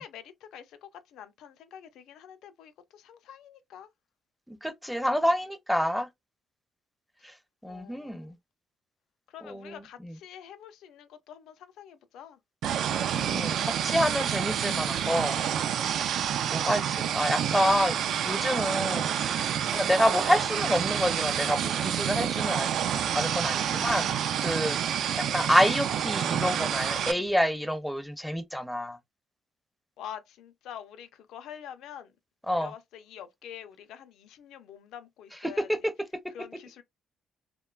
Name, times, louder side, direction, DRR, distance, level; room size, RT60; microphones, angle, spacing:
voice 1, 0.0-3.9 7.7-8.4 9.3-12.4 30.0-32.1 32.5-35.9 36.3-36.8, left 9 dB, 85° left, 0.4 m, -46 dB
voice 2, 4.5-6.1 7.2-7.3 7.6-8.4 9.4-9.7 10.0-10.1 13.3-15.4 15.9-18.0 18.2-19.1 19.7-22.7 23.1-24.1 24.4-24.8 25.2-29.0 32.5-32.7 35.6-35.9, equal, ahead, 0.4 m, -28 dB
sound 1, 12.6-27.1, right 9 dB, 75° right, 0.3 m, -28 dB
2.9 x 2.1 x 2.2 m
cardioid pair, 90°, 0 cm